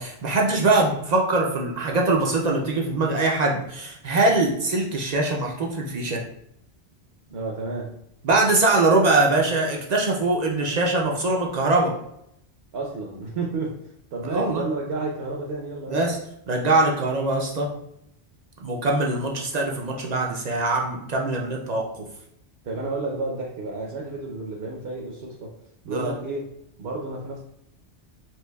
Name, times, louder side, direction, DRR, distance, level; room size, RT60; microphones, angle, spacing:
voice 1, 0.0-6.2 8.2-11.9 14.3-14.6 15.9-16.2 16.5-17.7 18.6-21.9 25.9-26.1, right 2 dB, 55° right, 0 dB, 0.5 m, -22 dB
voice 2, 7.3-8.0 12.7-13.8 14.1-16.0 22.6-25.5 25.8-26.5 26.8-27.4, right 3 dB, 70° right, -1 dB, 0.9 m, -31 dB
4.4 x 2.7 x 2.2 m, 0.77 s
omnidirectional pair, 1.1 m